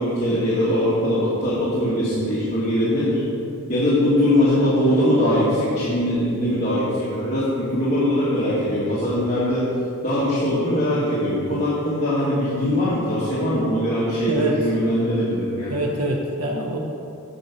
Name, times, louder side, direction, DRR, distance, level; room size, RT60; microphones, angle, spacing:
voice 1, 0.0-3.2 3.7-9.7 10.0-15.7, left 1 dB, 30° left, -10 dB, 1.4 m, -21 dB
voice 2, 14.3-14.6 15.7-16.8, right 1 dB, 85° right, -1 dB, 0.9 m, -24 dB
9.0 x 4.5 x 5.7 m, 2.6 s
head